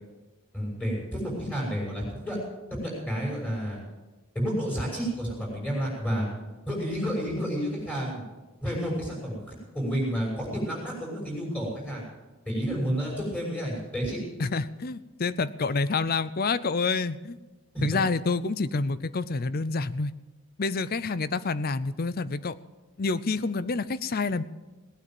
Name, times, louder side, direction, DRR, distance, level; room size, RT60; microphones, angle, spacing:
voice 1, 0.5-2.4 2.7-3.8 4.3-6.3 6.7-8.2 8.6-9.4 9.7-12.0 12.4-14.2 17.7-18.0, equal, 10° left, -3 dB, 6.3 m, -30 dB
voice 2, 14.4-17.4 17.8-20.1 20.6-22.5 23.0-24.4, left 4 dB, 45° left, 16 dB, 0.6 m, -28 dB
19.0 x 9.3 x 7.7 m, 1.2 s
head